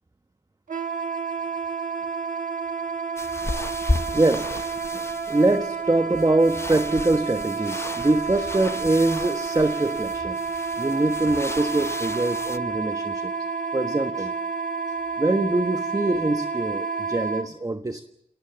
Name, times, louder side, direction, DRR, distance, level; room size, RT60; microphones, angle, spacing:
Wind instrument woodwind instrument, 0.7-17.5, right 5 dB, 85° right, 1.5 m, -30 dB
sound 1, 3.2-12.6, left 2 dB, 20° left, 0.9 m, -34 dB
voice 1, 4.1-10.4 10.8-13.3 13.7-14.3 15.2-18.0, right 2 dB, 30° right, 8 dB, 1.3 m, -24 dB
28.0 x 19.0 x 7.2 m, 0.78 s
wide cardioid pair, 90°, 13 cm